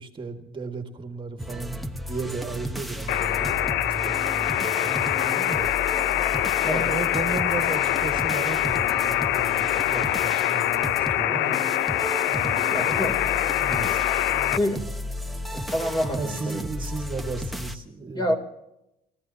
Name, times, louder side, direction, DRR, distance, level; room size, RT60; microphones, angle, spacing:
voice 1, 0.0-5.7 6.6-11.5 12.3-13.2 13.6-14.0 16.2-18.3, right 4 dB, 30° right, 5 dB, 1.8 m, -35 dB
sound 1, 1.4-17.8, equal, ahead, 1.1 m, -34 dB
sound 2, 3.1-14.6, left 13 dB, 90° left, 0.6 m, -24 dB
voice 2, 11.3-11.6 12.7-13.1 14.6-14.8 15.5-16.6 18.1-18.3, left 1 dB, 25° left, 4 dB, 3.3 m, -27 dB
30.0 x 14.5 x 2.8 m, 0.85 s
cardioid pair, 110°, 17 cm